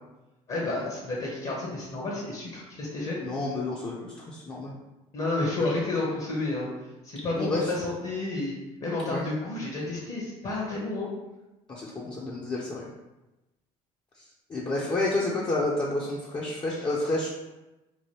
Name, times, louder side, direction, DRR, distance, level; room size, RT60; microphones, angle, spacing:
voice 1, 0.5-3.2 5.1-6.7 7.0-8.5 8.8-11.1 16.7-16.9, left 2 dB, 45° left, -4 dB, 0.9 m, -31 dB
voice 2, 3.2-4.7 7.4-7.7 9.1-9.2 11.7-12.9 14.5-17.3, left 2 dB, 30° left, -5 dB, 0.6 m, -29 dB
3.0 x 2.2 x 3.1 m, 1.0 s
supercardioid pair, 70°, 16 cm